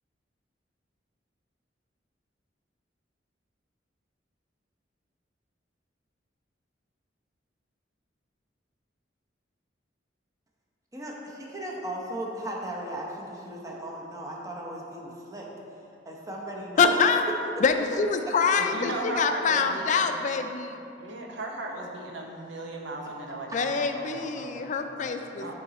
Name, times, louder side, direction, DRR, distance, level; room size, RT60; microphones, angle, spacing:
voice 1, 10.9-15.5 16.1-17.0 18.2-18.3 25.4-25.5, right 1 dB, 20° right, -2 dB, 0.8 m, -37 dB
voice 2, 16.8-17.2 17.6-20.8 23.5-25.5, left 5 dB, 40° left, 7 dB, 0.3 m, -25 dB
voice 3, 18.6-20.2 21.0-25.1 25.4-25.5, right 2 dB, 85° right, 0 dB, 0.9 m, -37 dB
8.3 x 3.9 x 4.1 m, 2.7 s
head